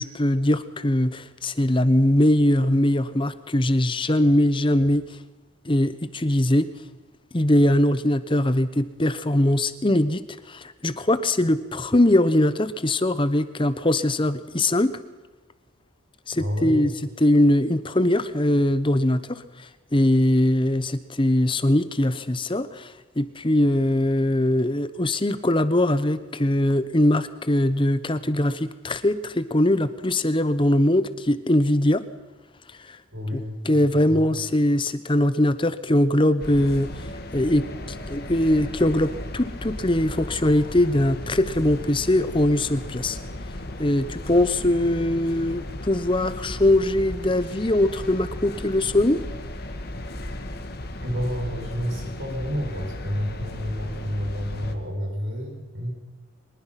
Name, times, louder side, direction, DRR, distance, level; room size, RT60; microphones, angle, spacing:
voice 1, 0.0-5.0 5.6-6.7 7.3-10.2 10.5-15.0 16.3-16.9 17.2-32.0 32.9-33.0 33.3-43.2 43.8-49.2, left 1 dB, 25° left, 13 dB, 0.9 m, -21 dB
voice 2, 16.4-16.9 33.1-34.4 51.0-55.9, equal, 70° right, 0 dB, 6.9 m, -30 dB
sound 1, 36.4-54.7, left 1 dB, 50° left, 1.7 m, -35 dB
23.5 x 20.0 x 5.9 m, 1.2 s
head